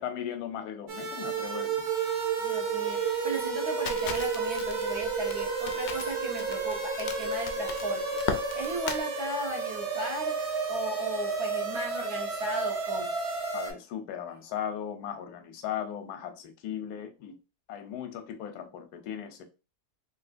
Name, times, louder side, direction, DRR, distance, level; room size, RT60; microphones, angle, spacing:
voice 1, 0.0-1.8 13.5-17.4 17.7-19.4, left 9 dB, 90° left, 1.1 m, -37 dB
sound 1, 0.9-13.7, right 4 dB, 50° right, 1.0 m, -31 dB
voice 2, 2.4-13.1, right 1 dB, 75° right, 1.5 m, -36 dB
Crackle, 3.9-9.0, left 6 dB, 75° left, 0.6 m, -37 dB
3.6 x 2.6 x 2.5 m
omnidirectional pair, 1.6 m